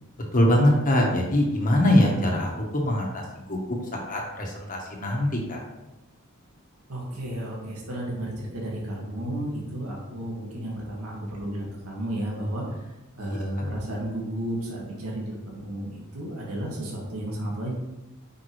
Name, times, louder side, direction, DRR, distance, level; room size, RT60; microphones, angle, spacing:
voice 1, 0.3-3.2 3.5-3.6 3.9-5.6 13.6-13.7, left 1 dB, 40° left, 0 dB, 1.3 m, -22 dB
voice 2, 6.9-12.8 13.2-17.7, right 1 dB, 85° right, -3 dB, 2.0 m, -32 dB
8.6 x 5.6 x 3.2 m, 1.0 s
head